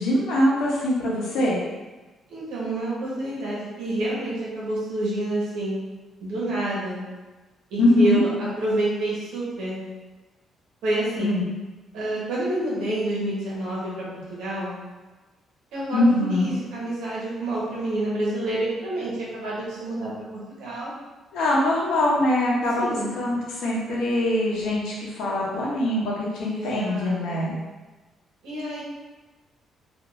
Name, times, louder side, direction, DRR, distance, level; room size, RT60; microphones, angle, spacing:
voice 1, 0.0-1.6 7.8-8.2 11.2-11.5 15.9-16.5 21.3-22.9 23.2-27.6, left 1 dB, 85° left, -4 dB, 0.8 m, -23 dB
voice 2, 2.3-5.8 6.2-7.0 7.7-9.8 10.8-11.3 11.9-14.7 15.7-20.1 20.6-20.9 22.8-23.1 26.5-27.5 28.4-28.8, right 1 dB, 90° right, -6 dB, 1.1 m, -28 dB
3.4 x 2.5 x 2.6 m, 1.2 s
cardioid pair, 90°, 0 cm